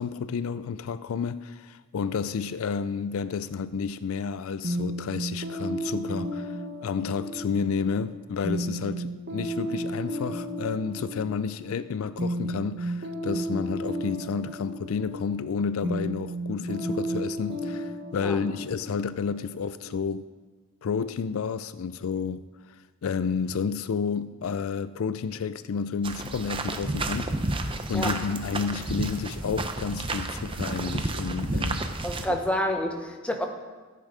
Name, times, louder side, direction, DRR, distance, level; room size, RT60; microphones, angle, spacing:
voice 1, 0.0-20.3 20.8-22.5 23.0-31.9 32.3-32.4, left 6 dB, 75° left, 0.4 m, -31 dB
sound 1, 4.6-20.2, right 1 dB, 50° right, 1.6 m, -33 dB
sound 2, 26.0-32.3, right 2 dB, 25° right, 0.7 m, -31 dB
voice 2, 32.0-33.5, left 1 dB, 5° left, 1.0 m, -28 dB
14.0 x 8.4 x 4.9 m
head